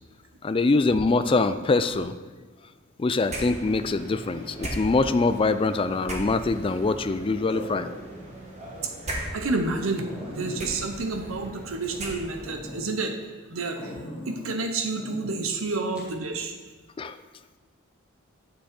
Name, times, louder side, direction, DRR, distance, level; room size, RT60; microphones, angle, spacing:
voice 1, 0.4-2.1 3.0-7.9 17.0-17.2, left 3 dB, 25° left, 11 dB, 0.4 m, -24 dB
sound 1, 3.3-12.6, right 1 dB, 35° right, 1.6 m, -38 dB
sound 2, 7.5-8.2 8.7-8.8 9.3-9.4 9.6-9.7 10.0-12.0 12.4-12.8 13.8-14.6 15.0-15.4 16.0-16.1, equal, 5° right, 2.0 m, -40 dB
voice 2, 8.8-13.2 13.5-13.9 14.3-16.5, right 3 dB, 75° right, 6 dB, 0.8 m, -30 dB
9.2 x 7.5 x 4.3 m, 1.3 s
head